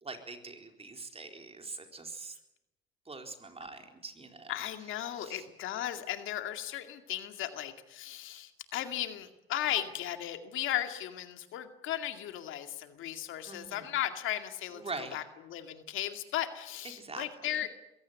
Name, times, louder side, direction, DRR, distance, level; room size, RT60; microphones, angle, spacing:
voice 1, 0.0-2.4 3.1-4.5 5.1-5.4 13.5-14.0 14.7-15.2 16.9-17.3 17.6-17.7, right 3 dB, 30° right, 5 dB, 4.1 m, -43 dB
voice 2, 4.5-17.7, left 12 dB, 85° left, 8 dB, 2.3 m, -36 dB
22.0 x 17.0 x 9.4 m, 0.91 s
cardioid pair, 90°, 20 cm